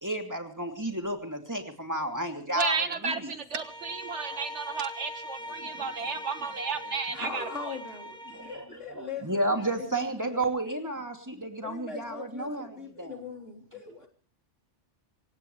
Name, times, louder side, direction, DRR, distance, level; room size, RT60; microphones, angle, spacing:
voice 1, 0.0-3.3 5.5-5.7 6.2-6.3 6.5-6.9 8.3-13.2, right 1 dB, 15° right, 3 dB, 2.7 m, -32 dB
voice 2, 2.6-7.4, right 5 dB, 75° right, 9 dB, 1.8 m, -32 dB
Bowed string instrument, 3.5-8.7, equal, 5° left, 2.3 m, -42 dB
voice 3, 7.1-10.4 11.6-14.1, left 5 dB, 80° left, 1 dB, 4.1 m, -41 dB
27.0 x 17.0 x 3.2 m, 0.39 s
omnidirectional pair, 1.2 m